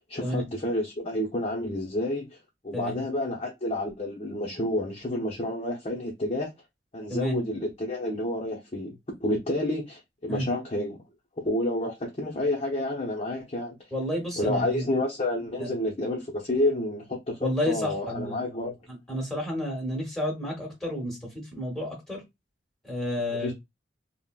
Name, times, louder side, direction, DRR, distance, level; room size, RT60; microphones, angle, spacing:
voice 1, 0.0-2.4 2.6-6.5 6.9-11.0 11.4-13.8 14.4-18.8 23.3-23.5, left 1 dB, 35° left, 0.6 m, -29 dB
voice 2, 7.1-7.4 10.3-10.5 13.9-14.8 15.6-15.7 17.4-18.4 19.1-22.2 22.8-23.5, equal, ahead, 1.2 m, -30 dB
3.6 x 2.0 x 2.3 m
head